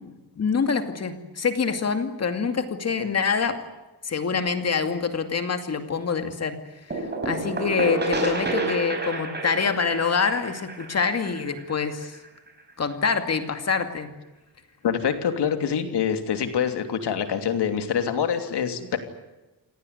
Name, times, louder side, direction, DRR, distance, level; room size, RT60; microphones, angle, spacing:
voice 1, 0.0-3.7 4.0-6.6 6.9-12.2 12.8-14.1, left 5 dB, 40° left, 8 dB, 2.4 m, -26 dB
sound 1, 6.9-12.5, right 3 dB, 25° right, 5.3 m, -30 dB
voice 2, 14.8-19.0, left 7 dB, 75° left, 8 dB, 3.0 m, -25 dB
28.0 x 18.0 x 9.6 m, 1.1 s
wide cardioid pair, 180°, 41 cm